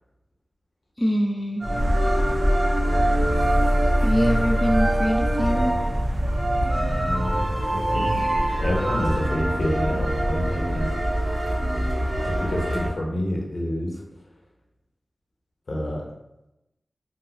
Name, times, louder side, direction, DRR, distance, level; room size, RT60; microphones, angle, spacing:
voice 1, 1.0-1.6 4.0-5.8, equal, 10° left, 2 dB, 0.3 m, -24 dB
sound 1, 1.6-12.9, equal, 45° right, 0.5 m, -23 dB
voice 2, 6.9-8.3 8.6-11.0 12.2-14.0 15.7-16.0, equal, 70° left, -2 dB, 0.7 m, -28 dB
3.0 x 2.6 x 2.6 m, 0.92 s
wide cardioid pair, 70°, 0 cm